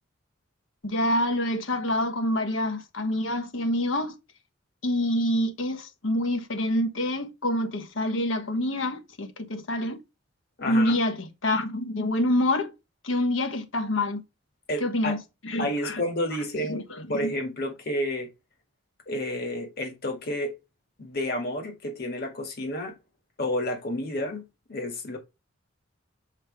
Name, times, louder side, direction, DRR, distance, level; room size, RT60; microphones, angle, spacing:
voice 1, 0.8-4.1 4.8-10.0 10.7-12.7 13.0-14.2 14.8-16.0 16.7-17.3, left 1 dB, 80° left, 1.3 m, -27 dB
voice 2, 10.6-11.0 14.7-15.2 15.6-16.8 17.1-18.3 19.1-20.5 21.0-22.9 23.4-24.4 24.7-25.2, left 1 dB, 55° left, 2.0 m, -30 dB
6.5 x 4.9 x 3.3 m
head